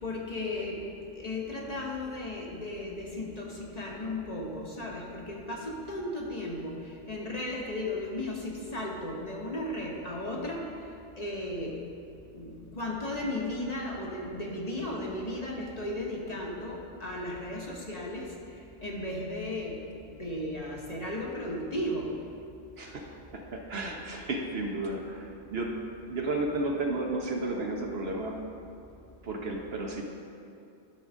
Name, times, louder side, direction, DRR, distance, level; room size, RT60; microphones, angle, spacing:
voice 1, 0.0-0.8 1.1-6.7 7.1-10.6 11.2-11.8 12.3-18.3 18.8-19.7 20.1-22.1, left 1 dB, 35° left, -3 dB, 1.1 m, -35 dB
voice 2, 22.8-25.8 26.1-28.4 29.2-30.0, right 2 dB, 60° right, 1 dB, 1.1 m, -33 dB
11.5 x 3.9 x 6.1 m, 2.6 s
omnidirectional pair, 1.2 m